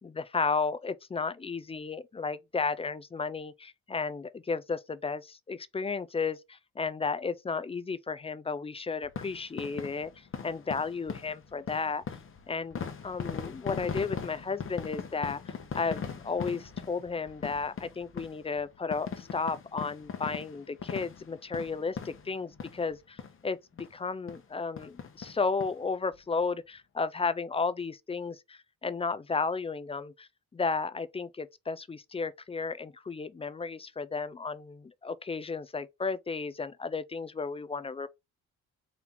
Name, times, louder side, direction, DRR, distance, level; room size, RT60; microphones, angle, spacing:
voice 1, 0.0-12.0 12.5-12.8 13.0-23.6 23.9-38.1, left 4 dB, 20° left, 0.4 m, -33 dB
sound 1, 9.0-22.9 23.2-23.4 23.8-23.9 24.3-24.4 24.8-25.7 26.1-26.2 26.4-26.5, left 6 dB, 45° left, 1.0 m, -40 dB
4.3 x 2.8 x 3.7 m
cardioid pair, 90°, 30 cm